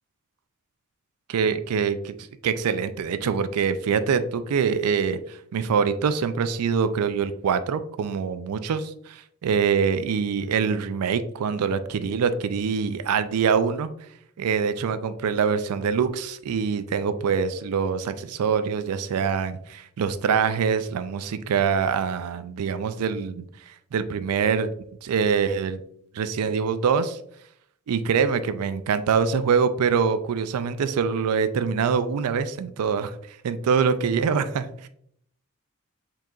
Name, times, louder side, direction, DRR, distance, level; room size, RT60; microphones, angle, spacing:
voice 1, 1.3-2.1 2.4-13.9 14.4-24.7 25.0-25.8 26.1-27.2 27.9-33.1 33.4-34.9, right 6 dB, 85° right, 11 dB, 0.4 m, -24 dB
4.6 x 3.8 x 2.4 m, 0.68 s
head